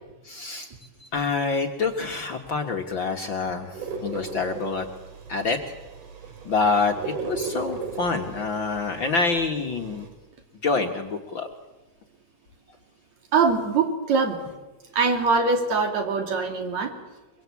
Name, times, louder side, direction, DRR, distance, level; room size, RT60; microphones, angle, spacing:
voice 1, 0.2-0.7 1.0-4.9 5.3-5.6 6.5-10.1 10.6-11.5, left 4 dB, 45° left, 4 dB, 1.8 m, -26 dB
sound 1, 3.7-10.1, right 4 dB, 85° right, 4.7 m, -37 dB
voice 2, 13.3-14.4 14.9-16.9, right 4 dB, 60° right, 5 dB, 4.0 m, -23 dB
24.0 x 23.5 x 8.4 m, 1.1 s
omnidirectional pair, 3.5 m